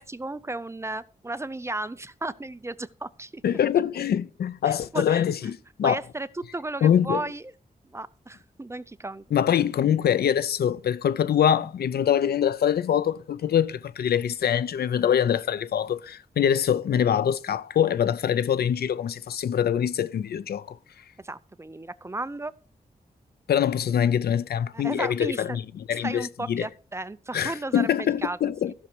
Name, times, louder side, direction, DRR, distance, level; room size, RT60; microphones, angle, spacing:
voice 1, 0.0-3.4 4.7-5.2 5.8-7.5 7.9-9.2 21.2-22.5 24.7-25.6 25.9-28.4 28.7-28.8, right 2 dB, 15° right, 0.5 m, -34 dB
voice 2, 3.4-6.0 6.8-7.2 9.3-20.8 23.5-25.6 25.9-26.7 27.3-28.7, left 9 dB, 85° left, 0.5 m, -24 dB
15.0 x 6.2 x 4.5 m
wide cardioid pair, 100°, 16 cm